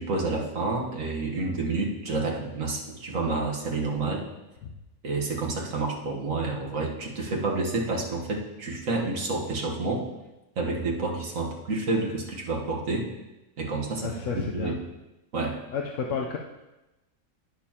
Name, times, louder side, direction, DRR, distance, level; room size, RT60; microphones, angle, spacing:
voice 1, 0.0-4.3 5.0-10.1 10.6-13.1 13.6-14.8 15.3-15.6, right 3 dB, 75° right, 0 dB, 1.7 m, -29 dB
voice 2, 14.0-14.7 15.7-16.4, left 5 dB, 70° left, 0 dB, 1.1 m, -31 dB
19.5 x 6.8 x 2.9 m, 0.99 s
omnidirectional pair, 1.4 m